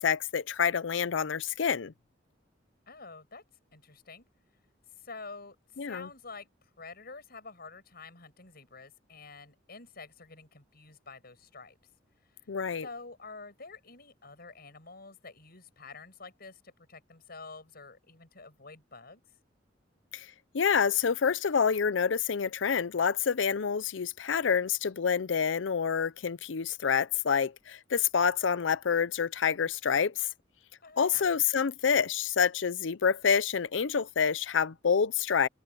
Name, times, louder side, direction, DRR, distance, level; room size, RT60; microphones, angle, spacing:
voice 1, 0.0-1.9 5.8-6.1 12.5-12.9 20.1-20.3 20.5-30.3 31.0-35.5, left 6 dB, 85° left, 0.6 m, -27 dB
voice 2, 2.9-3.4 3.7-4.3 5.0-11.8 12.8-19.2 30.8-31.4, left 4 dB, 55° left, 7.9 m, -48 dB
head